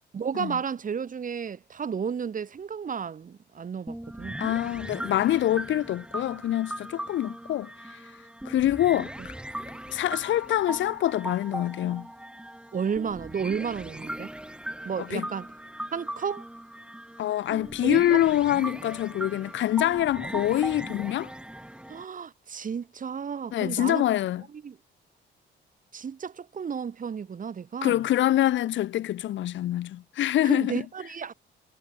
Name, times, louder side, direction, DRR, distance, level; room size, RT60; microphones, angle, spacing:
voice 1, 0.1-4.4 9.2-9.3 9.6-9.8 12.7-14.3 14.8-15.5 15.9-16.5 17.8-18.2 20.2-20.3 21.9-24.1 24.5-24.8 25.9-28.0 30.4-31.3, right 6 dB, 40° right, 2.0 m, -32 dB
sound 1, 3.9-22.0, right 1 dB, 5° right, 3.3 m, -39 dB
voice 2, 4.4-7.7 8.4-9.3 9.9-12.1 15.0-15.3 17.2-21.3 23.5-24.4 27.8-30.8, left 13 dB, 70° left, 0.9 m, -25 dB
cardioid pair, 90°, 20 cm